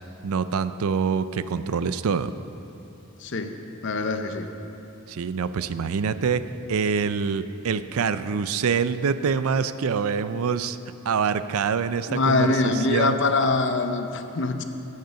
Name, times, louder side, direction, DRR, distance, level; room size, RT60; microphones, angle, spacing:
voice 1, 0.2-2.3 5.1-10.8 11.1-13.2, right 6 dB, 70° right, 13 dB, 0.4 m, -25 dB
voice 2, 3.2-4.5 12.1-14.6, left 3 dB, 55° left, 7 dB, 0.6 m, -24 dB
15.0 x 6.6 x 5.6 m, 2.8 s
head